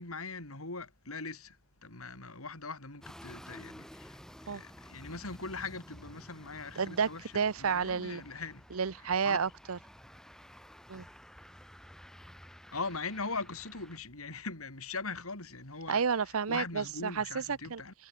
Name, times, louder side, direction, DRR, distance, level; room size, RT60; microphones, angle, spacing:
voice 1, 0.0-4.2 4.5-8.7 9.0-9.4 12.7-16.0 16.5-17.9, left 4 dB, 85° left, 4.9 m, -41 dB
sound 1, 3.0-14.0, equal, 5° left, 4.8 m, -52 dB
voice 2, 6.8-7.1 7.3-8.2 8.7-9.8 10.9-11.1 15.9-17.8, right 6 dB, 80° right, 0.7 m, -31 dB
head